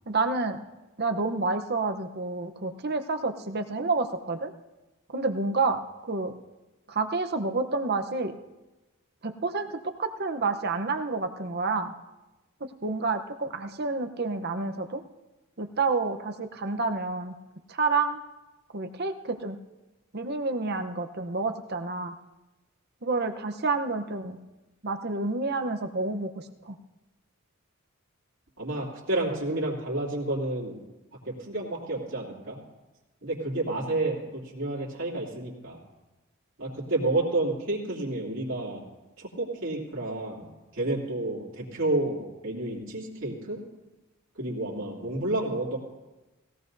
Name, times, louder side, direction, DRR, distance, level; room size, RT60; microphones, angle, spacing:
voice 1, 0.1-0.6 1.0-4.5 5.1-5.8 6.1-6.4 6.9-8.3 9.2-11.9 12.8-15.0 15.6-17.3 17.7-18.2 18.7-19.6 20.1-22.1 23.0-24.4 24.8-26.8, right 3 dB, 50° right, 6 dB, 0.8 m, -29 dB
voice 2, 28.6-30.8 31.2-32.6 33.2-35.8 36.6-38.8 39.2-43.6 44.4-45.8, right 2 dB, 65° right, -5 dB, 2.7 m, -30 dB
20.0 x 17.0 x 2.7 m, 1.1 s
head